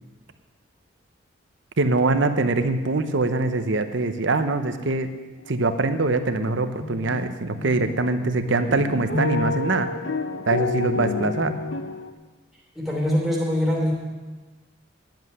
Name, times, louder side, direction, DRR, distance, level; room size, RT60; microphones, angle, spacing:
voice 1, 1.8-5.1 5.5-9.9 10.5-11.6, right 3 dB, 65° right, 9 dB, 0.9 m, -23 dB
sound 1, 5.4-5.6 5.9-7.2 7.6-12.1, left 3 dB, 65° left, 0.9 m, -29 dB
voice 2, 12.7-13.9, equal, ahead, -2 dB, 3.0 m, -23 dB
10.5 x 7.8 x 9.5 m, 1.3 s
head